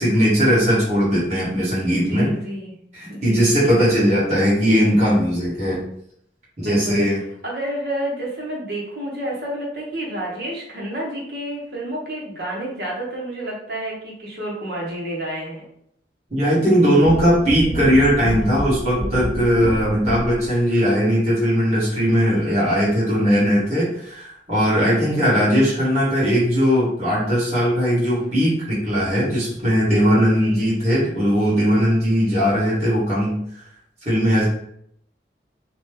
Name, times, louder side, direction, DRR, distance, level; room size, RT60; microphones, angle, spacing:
voice 1, 0.0-2.3 2.9-5.8 6.6-7.2 16.3-33.6 34.0-34.4, equal, 35° right, -8 dB, 1.4 m, -19 dB
voice 2, 1.9-2.7 3.1-3.5 4.0-4.1 6.6-7.0 7.4-15.7 24.9-25.2 30.4-30.6, right 1 dB, 60° right, -3 dB, 1.0 m, -30 dB
sound 1, 17.0-20.6, equal, 5° left, 1.0 m, -29 dB
3.0 x 2.2 x 3.2 m, 0.71 s
head